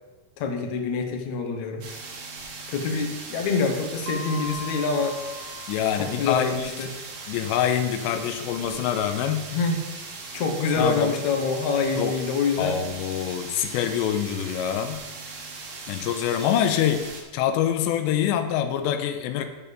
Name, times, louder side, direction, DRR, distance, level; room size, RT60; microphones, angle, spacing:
voice 1, 0.4-1.8 2.7-5.2 6.0-6.9 9.5-9.8 10.3-12.8, left 4 dB, 70° left, 3 dB, 1.8 m, -26 dB
sound 1, 1.8-17.2, right 4 dB, 60° right, 1.9 m, -39 dB
Mallet percussion, 4.1-6.7, left 2 dB, 80° right, 3.2 m, -39 dB
voice 2, 5.7-6.9 7.3-9.5 10.8-11.2 12.0-12.1 12.6-15.0 15.9-17.1 17.3-19.5, left 9 dB, 90° left, 8 dB, 2.9 m, -25 dB
8.9 x 7.0 x 5.1 m, 1.2 s
omnidirectional pair, 5.0 m